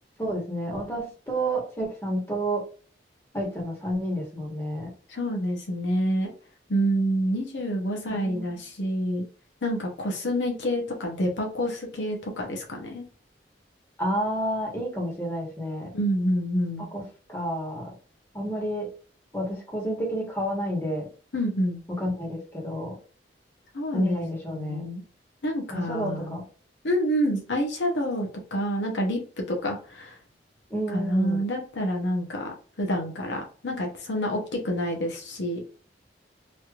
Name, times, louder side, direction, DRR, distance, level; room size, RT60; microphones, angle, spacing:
voice 1, 0.2-2.6 3.3-4.9 8.1-8.5 14.0-15.9 16.8-17.9 18.3-18.9 19.3-21.1 22.0-22.9 23.9-24.8 25.7-26.4 30.7-31.4, equal, 15° left, -2 dB, 1.3 m, -30 dB
voice 2, 5.1-6.3 6.7-9.2 9.6-13.0 15.9-16.9 21.3-21.8 23.7-24.3 24.5-25.0 25.4-26.4 26.8-29.2 29.5-30.2 30.9-35.6, equal, 70° left, 1 dB, 0.8 m, -28 dB
3.2 x 2.9 x 2.4 m, 0.39 s
head